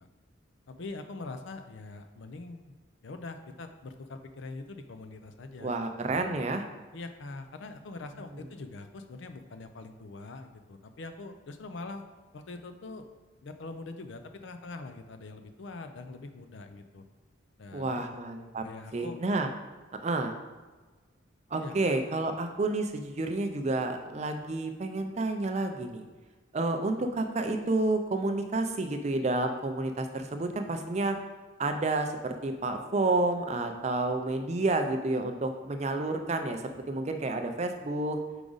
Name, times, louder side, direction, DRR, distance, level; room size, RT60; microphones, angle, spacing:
voice 1, 0.7-2.7 3.0-5.7 6.1-6.5 6.9-12.0 12.3-13.1 13.4-17.0 17.6-18.2 18.6-19.2 21.6-21.8, left 3 dB, 65° left, 8 dB, 0.5 m, -43 dB
voice 2, 5.6-6.7 17.7-18.6 18.9-19.5 20.0-20.4 21.5-26.1 26.5-31.2 31.6-38.2, right 2 dB, 35° right, 6 dB, 0.4 m, -30 dB
5.0 x 4.8 x 3.9 m, 1.3 s
head